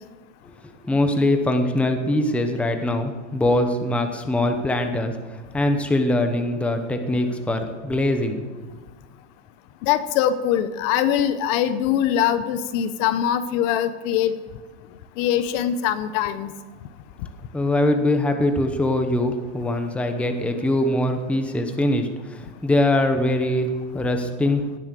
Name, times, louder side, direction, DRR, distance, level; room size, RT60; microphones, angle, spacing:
voice 1, 0.6-8.4 17.5-24.6, left 1 dB, 5° left, 6 dB, 0.9 m, -22 dB
voice 2, 9.8-14.3 15.2-16.5, left 10 dB, 45° left, 13 dB, 1.0 m, -22 dB
18.5 x 9.6 x 6.8 m, 1.3 s
supercardioid pair, 160°, 38 cm